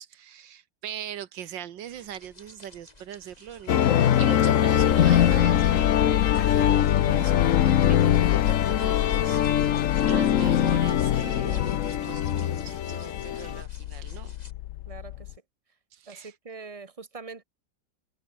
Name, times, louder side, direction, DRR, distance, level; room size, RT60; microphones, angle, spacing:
voice 1, 0.0-9.4 10.0-14.3 15.9-16.3, right 10 dB, 80° right, 1.8 m, -41 dB
sound 1, 1.8-14.5, left 1 dB, 20° left, 4.7 m, -53 dB
sound 2, 3.7-13.6, left 10 dB, 55° left, 1.0 m, -22 dB
sound 3, 4.8-15.3, left 15 dB, 75° left, 1.1 m, -29 dB
voice 2, 14.9-15.4 16.1-17.4, right 4 dB, 20° right, 1.9 m, -43 dB
omnidirectional pair, 2.0 m